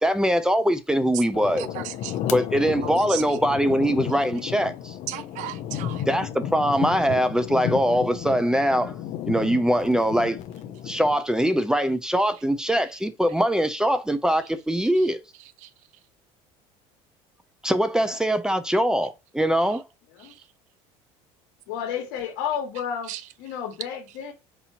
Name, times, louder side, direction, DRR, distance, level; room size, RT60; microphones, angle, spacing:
voice 1, 0.0-1.7 2.3-4.9 6.1-8.9 9.3-10.4 10.9-15.2 17.6-19.8, equal, 5° right, 0.4 m, -22 dB
sound 1, 1.3-11.2, left 10 dB, 60° left, 0.6 m, -33 dB
voice 2, 1.6-2.2 2.8-3.2 5.1-6.0 15.6-15.7 20.2-20.3 23.1-23.2, right 14 dB, 65° right, 0.5 m, -35 dB
voice 3, 21.7-23.1 23.4-24.3, left 8 dB, 80° left, 1.1 m, -31 dB
4.3 x 2.7 x 2.8 m
supercardioid pair, 115°, 14 cm